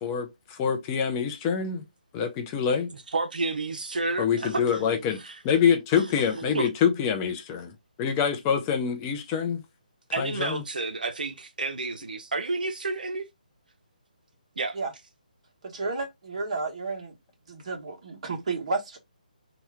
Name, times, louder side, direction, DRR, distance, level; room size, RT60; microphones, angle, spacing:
voice 1, 0.0-1.8 2.1-2.9 4.2-5.2 5.4-7.7 8.0-9.6 10.2-10.6, left 7 dB, 20° left, 0.4 m, -25 dB
voice 2, 2.9-4.8 5.1-5.4 6.0-6.7 10.1-13.3 14.6-14.8, right 3 dB, 75° right, 0.7 m, -31 dB
voice 3, 15.6-17.1 17.5-19.0, right 3 dB, 45° right, 1.2 m, -32 dB
2.8 x 2.3 x 3.3 m
figure-of-eight pair, 155°, 5 cm